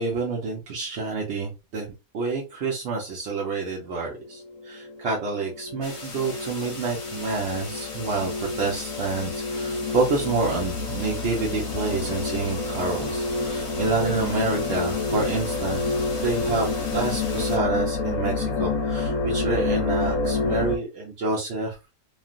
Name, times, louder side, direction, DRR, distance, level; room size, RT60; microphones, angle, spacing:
voice 1, 0.0-1.9 2.1-8.3 8.6-15.9 16.2-21.8, right 3 dB, 55° right, -3 dB, 0.9 m, -28 dB
sound 1, 4.1-20.8, left 3 dB, 70° left, 1.0 m, -29 dB
sound 2, 5.8-17.6, left 2 dB, 30° left, 0.6 m, -40 dB
3.1 x 2.4 x 2.4 m, 0.27 s
omnidirectional pair, 1.5 m